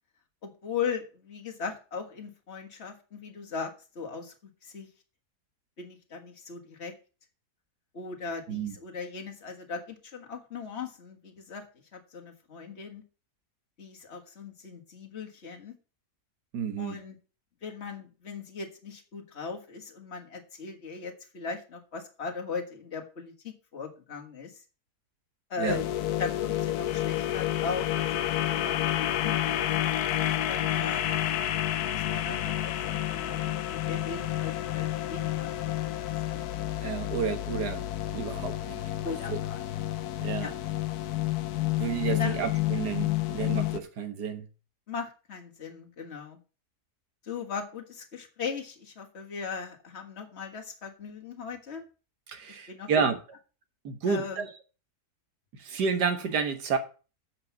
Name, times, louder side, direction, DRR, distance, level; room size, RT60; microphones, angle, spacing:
voice 1, 0.4-4.3 4.6-4.9 5.8-6.9 7.9-11.6 11.9-13.0 13.8-15.8 16.8-17.2 17.6-24.6 25.5-25.8 26.2-29.8 30.3-31.2 31.8-36.5 39.0-39.6 40.4-40.5 42.1-42.4 44.9-46.4 47.2-51.9 52.5-52.9 54.1-54.5, left 5 dB, 45° left, 1.8 m, -38 dB
voice 2, 16.5-17.0 25.6-25.8 36.8-37.8 38.1-38.8 39.3-39.4 40.2-40.5 41.8-44.4 52.3-53.2 53.8-54.5 55.6-56.8, right 6 dB, 90° right, 1.9 m, -30 dB
sound 1, 25.7-43.8, left 13 dB, 75° left, 1.2 m, -30 dB
8.0 x 5.7 x 7.1 m
omnidirectional pair, 1.7 m